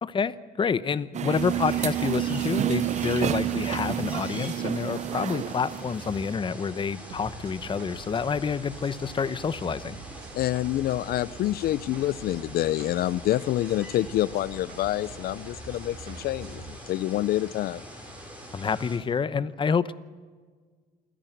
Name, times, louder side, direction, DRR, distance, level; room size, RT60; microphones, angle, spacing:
voice 1, 0.0-10.0 18.5-19.9, left 6 dB, 30° left, 15 dB, 0.9 m, -28 dB
sound 1, 1.1-6.3, right 11 dB, 45° right, 0.7 m, -29 dB
sound 2, 1.3-19.0, equal, 10° right, 5.7 m, -43 dB
sound 3, 7.1-16.8, right 9 dB, 75° right, 1.2 m, -48 dB
voice 2, 10.3-17.8, left 14 dB, 65° left, 17 dB, 0.5 m, -27 dB
28.0 x 10.5 x 9.3 m, 1.5 s
cardioid pair, 110°, 17 cm